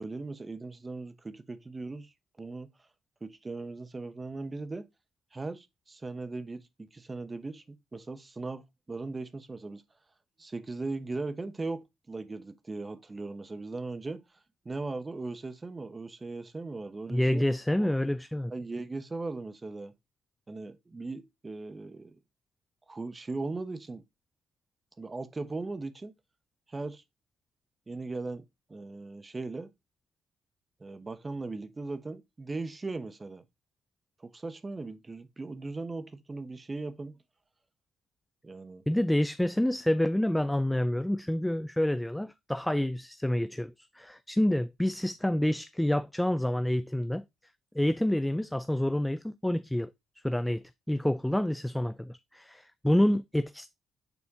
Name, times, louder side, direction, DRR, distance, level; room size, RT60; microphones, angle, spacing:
voice 1, 0.0-2.1 2.4-2.7 3.2-4.8 5.3-9.8 10.4-14.2 14.6-17.4 17.8-17.9 18.5-19.9 20.5-22.2 22.9-24.0 25.0-26.1 26.7-27.0 27.9-28.4 28.7-29.7 30.8-33.4 34.2-37.2 38.4-38.8, right 3 dB, 25° right, 0.8 m, -38 dB
voice 2, 17.1-18.5 38.9-47.2 47.7-49.9 50.2-53.7, left 1 dB, 5° left, 0.3 m, -28 dB
6.9 x 4.2 x 3.6 m
cardioid pair, 90°, 0 cm